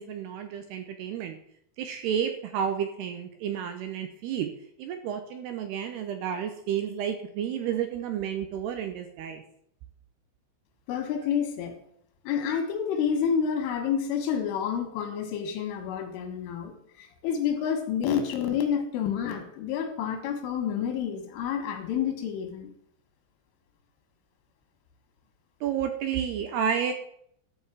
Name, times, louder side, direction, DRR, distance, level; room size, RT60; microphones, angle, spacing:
voice 1, 0.0-1.4 1.8-4.5 4.8-9.4 25.6-26.9, right 8 dB, 80° right, 7 dB, 2.5 m, -31 dB
voice 2, 10.9-11.8 12.3-16.7 17.0-22.7, left 8 dB, 90° left, 5 dB, 4.2 m, -29 dB
13.0 x 5.4 x 7.5 m, 0.69 s
omnidirectional pair, 5.5 m